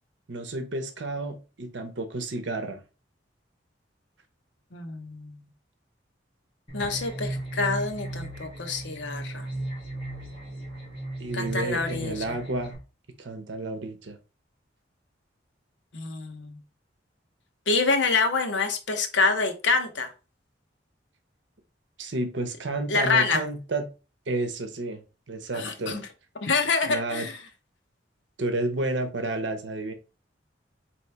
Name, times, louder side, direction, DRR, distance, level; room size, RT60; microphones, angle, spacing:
voice 1, 0.3-2.8 11.2-12.8 13.2-14.2 22.0-23.9 24.3-25.0 25.3-26.0 26.9-27.3 28.4-29.9, right 2 dB, 80° right, 0.8 m, -31 dB
voice 2, 4.7-5.4 6.7-9.5 11.3-12.2 15.9-16.6 17.7-20.1 22.9-23.4 25.5-26.0 26.4-27.4, left 4 dB, 75° left, 0.8 m, -26 dB
sound 1, 6.7-12.7, right 1 dB, 30° left, 1.7 m, -36 dB
4.2 x 3.1 x 3.3 m
head